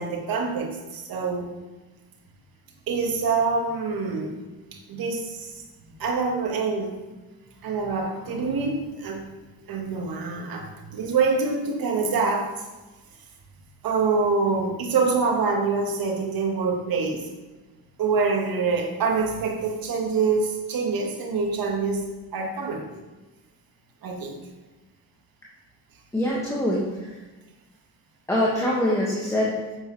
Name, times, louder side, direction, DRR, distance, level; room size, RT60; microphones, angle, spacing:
voice 1, 0.0-1.5 2.9-4.3 4.7-5.5 6.0-7.0 7.6-9.2 9.7-10.7 10.9-12.5 13.8-17.3 18.0-22.8 24.0-24.3, right 4 dB, 60° right, 2 dB, 1.7 m, -25 dB
voice 2, 26.1-27.1 28.3-29.5, left 1 dB, 10° left, -5 dB, 1.7 m, -24 dB
8.0 x 7.6 x 3.3 m, 1.2 s
cardioid pair, 90°, 39 cm